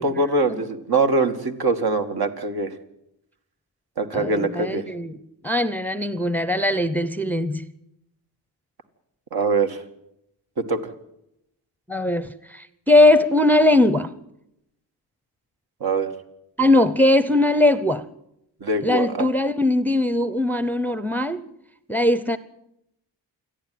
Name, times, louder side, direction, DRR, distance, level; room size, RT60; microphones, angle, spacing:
voice 1, 0.0-2.7 4.0-4.9 9.3-9.8 10.6-10.8 15.8-16.1 18.6-19.3, right 3 dB, 65° right, 2.2 m, -23 dB
voice 2, 4.1-5.2 5.4-7.7 11.9-14.1 16.6-18.1 18.8-21.4 21.9-22.4, left 1 dB, 5° left, 0.7 m, -20 dB
28.0 x 11.0 x 9.5 m
cardioid pair, 110°, 40 cm